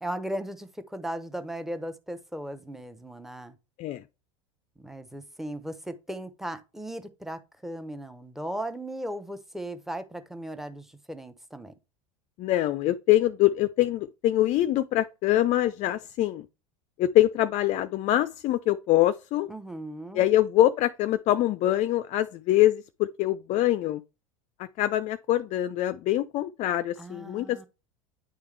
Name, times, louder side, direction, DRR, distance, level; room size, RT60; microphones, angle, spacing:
voice 1, 0.0-3.6 4.8-11.7 19.5-20.3 27.0-27.7, right 1 dB, ahead, 0.8 m, -37 dB
voice 2, 12.4-16.4 17.0-19.5 20.1-22.8 23.2-24.0 24.8-27.7, left 14 dB, 45° left, 0.4 m, -24 dB
9.8 x 3.5 x 3.3 m
hypercardioid pair, 90°, 17 cm